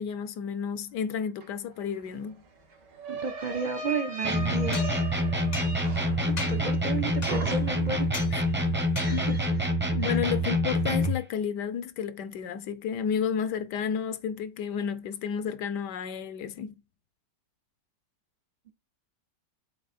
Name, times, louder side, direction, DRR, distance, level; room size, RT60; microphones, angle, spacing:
voice 1, 0.0-2.4 8.3-8.4 9.1-9.3 9.9-16.7, left 7 dB, 80° left, 1.3 m, -31 dB
sound 1, 1.4-1.5 1.8-7.0 7.3-8.0, right 2 dB, 85° right, 2.1 m, -39 dB
voice 2, 3.1-5.1 6.2-8.1 8.5-8.6 9.0-9.6 10.0-10.2, right 5 dB, 65° right, 0.4 m, -33 dB
sound 2, 4.2-11.2, equal, 10° right, 0.5 m, -26 dB
sound 3, 4.7-6.1 6.4-6.8 7.2-7.7 8.1-8.4 9.0-9.5, left 3 dB, 45° left, 0.5 m, -39 dB
7.5 x 3.5 x 4.2 m
omnidirectional pair, 1.8 m